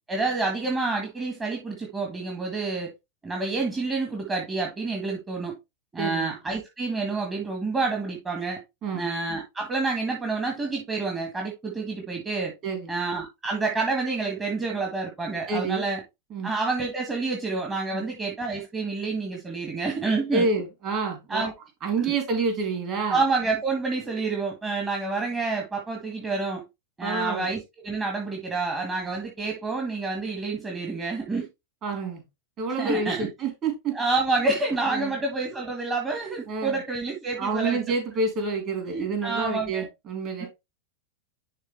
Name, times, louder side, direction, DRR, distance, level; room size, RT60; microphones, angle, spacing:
voice 1, 0.1-2.9 3.2-5.5 5.9-8.6 8.9-12.5 12.9-16.0 16.4-20.5 21.3-21.5 22.0-22.2 23.1-26.6 27.0-31.5 32.8-33.3 33.9-37.8 38.8-39.9 40.4-40.5, right 3 dB, 15° right, 1.7 m, -28 dB
voice 2, 6.0-6.3 8.8-9.1 12.6-12.9 15.5-15.8 16.3-16.5 17.9-18.0 20.3-21.5 21.8-23.2 27.0-27.5 31.8-32.2 32.6-33.9 34.9-35.2 36.5-36.8 37.4-40.5, right 4 dB, 35° right, 4.0 m, -28 dB
11.0 x 3.6 x 3.4 m
figure-of-eight pair, 90°, 0 cm